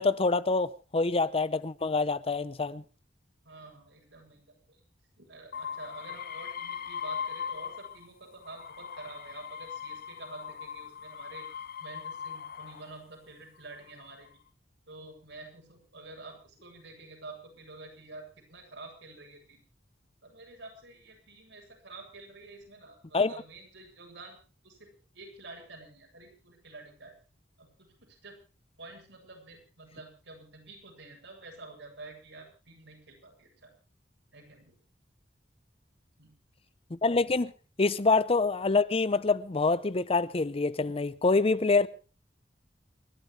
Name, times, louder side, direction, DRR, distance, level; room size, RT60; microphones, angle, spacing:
voice 1, 0.0-2.8 23.1-23.3 36.9-37.5 37.8-41.9, left 3 dB, 30° left, 0.7 m, -26 dB
voice 2, 3.4-4.8 5.2-11.5 11.8-14.3 14.9-19.6 20.2-27.1 27.6-28.4 28.8-33.7 34.3-34.8 36.2-36.3, right 3 dB, 80° right, 7.8 m, -49 dB
sound 1, 5.5-8.1 8.4-13.0 13.7-14.3, left 7 dB, 55° left, 1.3 m, -40 dB
29.0 x 12.5 x 3.3 m
head